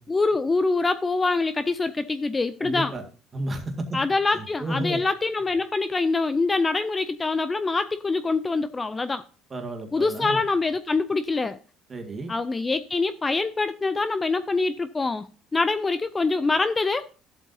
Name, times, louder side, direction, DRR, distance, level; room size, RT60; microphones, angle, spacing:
voice 1, 0.1-2.9 3.9-9.2 9.9-11.6 12.3-17.1, left 3 dB, 15° left, 0.4 m, -25 dB
voice 2, 2.6-3.0 3.3-4.0 4.3-5.0 9.5-10.4 11.9-12.3, right 1 dB, 20° right, 1.9 m, -32 dB
14.0 x 7.8 x 2.7 m
cardioid pair, 145°, 0 cm